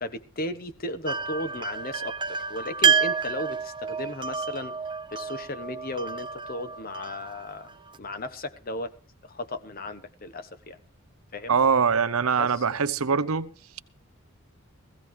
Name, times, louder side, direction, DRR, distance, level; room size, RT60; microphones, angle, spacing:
voice 1, 0.0-4.8 5.1-8.9 9.2-10.8 11.3-11.6 12.4-12.6 13.1-13.2, left 1 dB, 40° left, 1.1 m, -35 dB
sound 1, 1.0-8.0, right 6 dB, 20° right, 0.6 m, -29 dB
voice 2, 11.5-13.8, right 6 dB, 85° right, 0.7 m, -23 dB
16.0 x 16.0 x 3.2 m
head